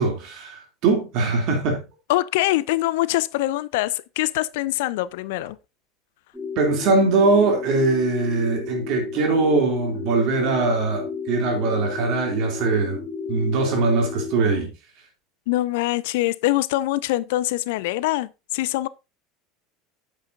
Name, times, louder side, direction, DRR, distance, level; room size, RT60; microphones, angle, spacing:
voice 1, 0.0-1.8 6.6-13.0 13.3-14.7, right 3 dB, 50° right, 3.0 m, -21 dB
voice 2, 2.1-5.6 15.5-18.9, left 17 dB, 60° left, 0.4 m, -24 dB
sound 1, 6.3-14.4, left 5 dB, 5° right, 3.0 m, -33 dB
8.6 x 8.3 x 2.7 m
figure-of-eight pair, 75°, 0 cm